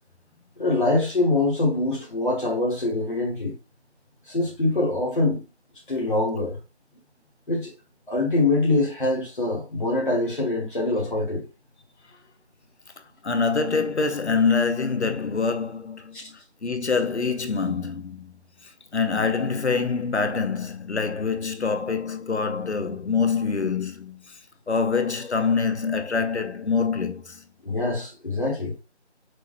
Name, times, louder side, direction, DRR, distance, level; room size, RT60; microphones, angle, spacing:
voice 1, 0.6-3.5 4.3-5.4 5.9-6.6 7.5-7.7 8.1-11.4 16.1-16.2 27.6-28.7, left 2 dB, 45° left, 1.3 m, -24 dB
voice 2, 13.2-18.3 18.9-24.4 24.7-27.4, left 5 dB, 70° left, 0.7 m, -25 dB
6.1 x 2.2 x 3.2 m
figure-of-eight pair, 170°, 35 cm